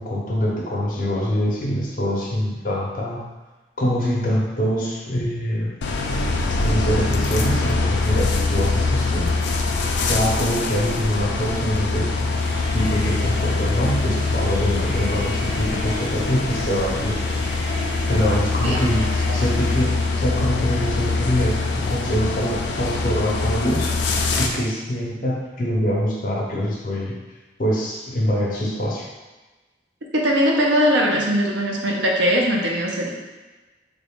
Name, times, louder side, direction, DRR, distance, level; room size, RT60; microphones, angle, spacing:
voice 1, 0.0-3.2 3.8-5.7 6.6-9.5 10.1-12.3 12.7-17.2 18.1-19.9 20.2-21.6 21.9-23.9 24.4-27.2 27.6-29.0, equal, 45° left, -4 dB, 0.8 m, -24 dB
sound 1, 5.8-24.5, left 3 dB, 70° left, 0.4 m, -23 dB
sound 2, 12.3-20.3, left 1 dB, 60° right, 1.0 m, -35 dB
voice 2, 30.1-33.1, equal, 85° right, -1 dB, 0.7 m, -20 dB
3.6 x 2.4 x 3.5 m, 1.2 s
head